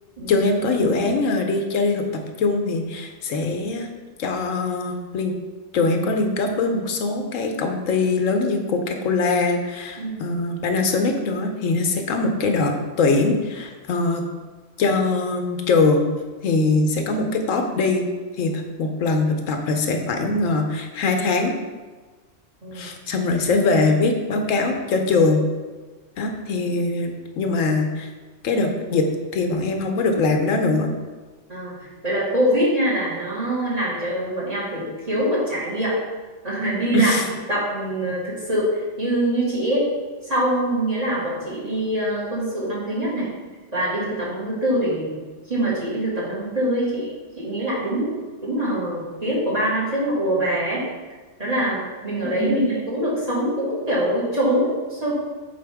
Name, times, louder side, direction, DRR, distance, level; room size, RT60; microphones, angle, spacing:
voice 1, 0.3-3.9 4.2-5.3 5.7-14.2 14.8-16.1 16.4-18.0 18.4-21.5 22.7-25.4 26.2-28.1 28.4-29.1 29.3-30.9 36.9-37.2 52.2-52.6, left 3 dB, 90° left, 4 dB, 1.1 m, -22 dB
voice 2, 10.0-10.4 22.6-22.9 31.5-36.0 36.4-37.1 37.5-39.9 40.2-43.3 43.7-45.2 45.5-47.1 47.4-48.1 48.4-50.9 51.4-55.1, right 1 dB, 30° right, -7 dB, 2.0 m, -24 dB
7.6 x 4.5 x 3.5 m, 1.3 s
omnidirectional pair, 1.3 m